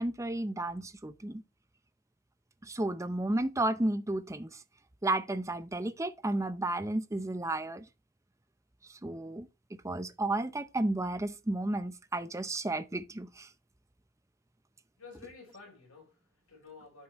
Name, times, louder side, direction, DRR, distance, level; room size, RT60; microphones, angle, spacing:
voice 1, 0.0-1.4 2.6-4.6 5.0-7.9 8.9-9.5 9.8-13.5, right 2 dB, 15° right, 0.6 m, -32 dB
voice 2, 15.0-17.0, left 4 dB, 70° left, 5.1 m, -51 dB
11.5 x 5.7 x 3.1 m
head